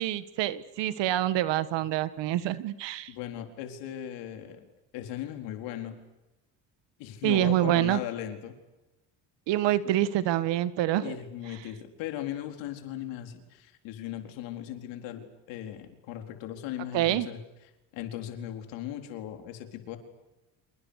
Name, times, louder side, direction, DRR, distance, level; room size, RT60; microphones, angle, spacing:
voice 1, 0.0-3.1 7.2-8.0 9.5-11.2 16.9-17.3, right 13 dB, 75° right, 14 dB, 1.9 m, -26 dB
voice 2, 3.1-4.7 4.9-5.9 7.0-8.6 11.0-17.4 17.9-20.0, left 11 dB, 85° left, 5 dB, 4.3 m, -38 dB
29.0 x 28.0 x 6.7 m, 0.99 s
supercardioid pair, 75°, 44 cm